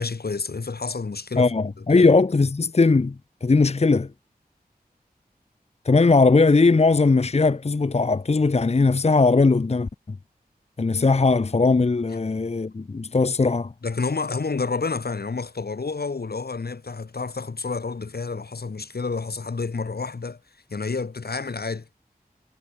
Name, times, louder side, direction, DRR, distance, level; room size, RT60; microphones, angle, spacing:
voice 1, 0.0-1.5 1.9-2.1 13.8-20.4 20.7-21.9, left 4 dB, 80° left, 3.0 m, -29 dB
voice 2, 1.4-4.1 5.9-10.2 10.8-13.7, left 3 dB, 40° left, 0.8 m, -19 dB
wide cardioid pair, 65°, 16 cm